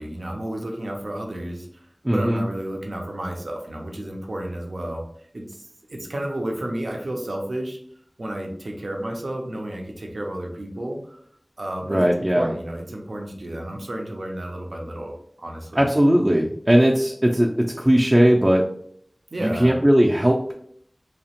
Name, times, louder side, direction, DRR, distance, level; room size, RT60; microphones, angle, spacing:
voice 1, 0.0-7.8 8.2-11.2 11.6-15.9 19.3-19.8, right 1 dB, 90° right, 1 dB, 0.5 m, -32 dB
voice 2, 2.0-2.4 11.9-12.5 15.8-18.6 19.4-20.5, equal, 25° right, -1 dB, 0.3 m, -18 dB
2.8 x 2.1 x 2.8 m, 0.65 s
wide cardioid pair, 40°, 0 cm